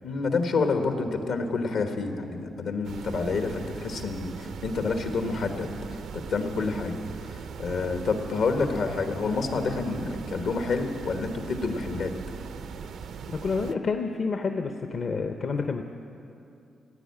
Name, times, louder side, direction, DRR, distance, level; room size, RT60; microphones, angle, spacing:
voice 1, 0.0-5.7 6.1-7.0 7.3-12.1, left 4 dB, 80° left, 5 dB, 1.4 m, -28 dB
sound 1, 2.8-13.7, right 7 dB, 80° right, 0.5 m, -40 dB
voice 2, 13.3-15.8, left 4 dB, 55° left, 5 dB, 0.7 m, -29 dB
15.5 x 9.7 x 8.5 m, 2.6 s
cardioid pair, 90°, 0 cm